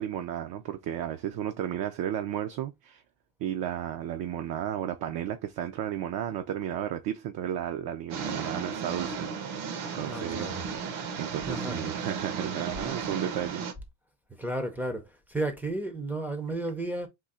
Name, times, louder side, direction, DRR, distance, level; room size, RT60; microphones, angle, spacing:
voice 1, 0.0-3.0 3.4-9.3 9.5-10.5 10.8-13.6, right 10 dB, 50° right, 0.5 m, -33 dB
sound 1, 8.1-13.7, right 6 dB, 65° right, 1.1 m, -35 dB
voice 2, 10.1-10.7 11.4-11.9 12.8-12.9 14.4-17.1, right 2 dB, 5° right, 0.5 m, -33 dB
3.8 x 2.8 x 4.0 m
cardioid pair, 170°, 49 cm